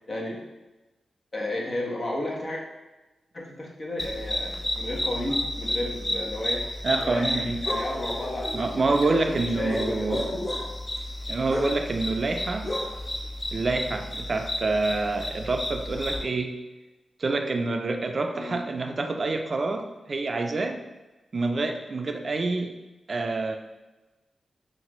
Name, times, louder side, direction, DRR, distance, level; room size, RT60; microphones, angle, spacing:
voice 1, 0.1-0.4 1.3-2.6 3.3-8.5 8.8-10.5 18.3-18.6, left 1 dB, 50° left, -2 dB, 1.2 m, -33 dB
sound 1, 4.0-16.2, left 1 dB, 30° left, 0.9 m, -32 dB
voice 2, 6.8-7.6 8.5-10.3 11.3-12.8 13.5-16.5 17.2-20.8 21.3-22.7 23.1-23.5, right 3 dB, 50° right, 5 dB, 0.4 m, -27 dB
5.6 x 2.6 x 3.1 m, 1.1 s
cardioid pair, 55°, 0 cm